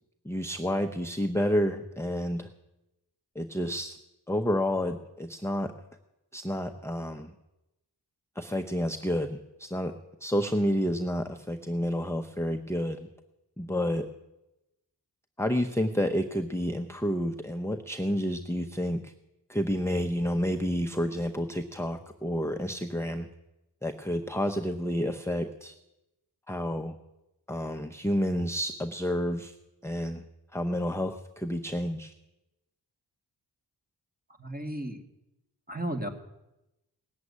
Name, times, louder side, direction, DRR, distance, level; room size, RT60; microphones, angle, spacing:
voice 1, 0.2-2.5 3.3-4.0 4.3-5.7 6.3-7.3 8.4-13.1 13.6-14.1 15.4-19.1 19.5-23.3 23.8-25.7 26.5-27.0 27.5-29.5 29.8-30.2 30.5-32.1, equal, 5° left, 5 dB, 0.7 m, -30 dB
voice 2, 34.4-35.0 35.7-36.1, right 1 dB, 20° right, 5 dB, 2.1 m, -34 dB
18.5 x 7.6 x 9.6 m, 0.95 s
wide cardioid pair, 80°, 41 cm